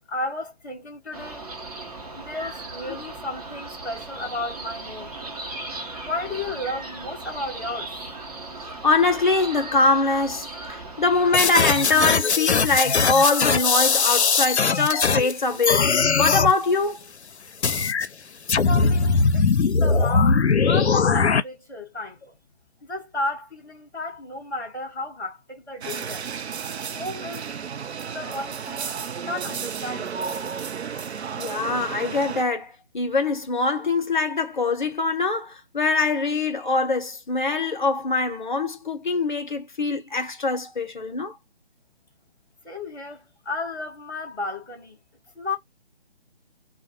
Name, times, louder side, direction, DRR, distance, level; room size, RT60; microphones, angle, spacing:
voice 1, 0.1-1.5 2.1-5.2 6.0-7.9 18.6-19.4 19.8-22.4 22.8-26.2 26.9-27.5 28.1-30.3 42.6-45.0 45.3-45.5, left 2 dB, 5° left, 0.6 m, -33 dB
sound 1, 1.1-12.1, right 2 dB, 35° right, 0.8 m, -37 dB
voice 2, 8.8-15.8 16.2-17.0 31.4-41.4, left 3 dB, 45° left, 0.7 m, -23 dB
sound 2, 11.3-15.3 15.6-16.5 17.6-18.1 18.5-21.4, left 5 dB, 85° left, 0.5 m, -20 dB
sound 3, 25.8-32.4, right 6 dB, 80° right, 0.5 m, -33 dB
2.5 x 2.1 x 2.8 m
figure-of-eight pair, 150°, 32 cm